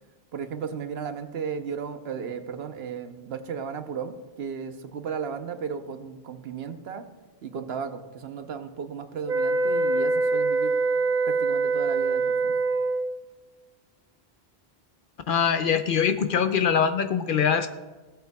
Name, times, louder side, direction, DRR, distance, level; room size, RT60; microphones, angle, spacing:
voice 1, 0.3-7.1 7.4-10.8 11.2-12.6, right 6 dB, 75° right, 9 dB, 1.0 m, -35 dB
sound 1, 9.3-13.2, right 3 dB, 50° right, 0.7 m, -24 dB
voice 2, 15.3-17.7, left 7 dB, 60° left, 9 dB, 0.7 m, -23 dB
16.5 x 7.9 x 2.3 m, 1.2 s
omnidirectional pair, 1.1 m